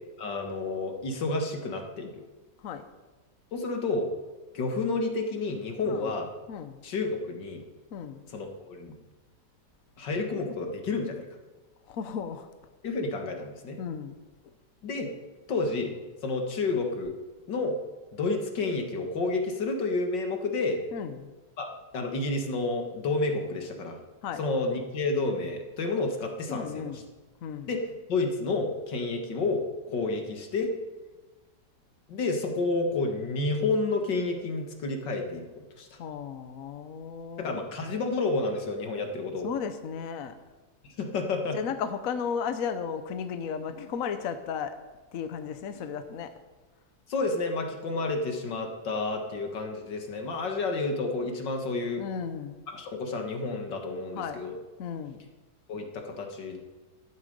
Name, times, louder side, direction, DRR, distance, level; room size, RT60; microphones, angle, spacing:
voice 1, 0.2-2.1 3.5-4.1 4.5-6.3 6.8-7.6 8.3-8.9 10.0-11.2 12.8-13.8 14.8-15.1 15.5-15.9 16.2-17.1 17.5-17.8 18.1-20.8 21.6-21.7 21.9-24.0 24.4-26.9 27.7-27.8 28.1-30.8 32.1-36.0 37.4-39.5 40.8-41.6 47.1-52.0 52.7-54.5 55.7-56.6, left 3 dB, 85° left, 3 dB, 2.3 m, -30 dB
voice 2, 6.5-6.8 7.9-8.2 11.9-12.5 13.8-14.2 14.4-14.5 20.9-21.3 24.2-24.4 26.5-27.0 27.4-27.7 36.0-37.6 39.4-40.4 41.5-44.8 45.1-46.4 52.0-52.6 54.1-54.4 54.8-55.3, left 7 dB, 60° left, 9 dB, 1.1 m, -35 dB
13.5 x 11.0 x 5.3 m, 1.2 s
omnidirectional pair, 1.9 m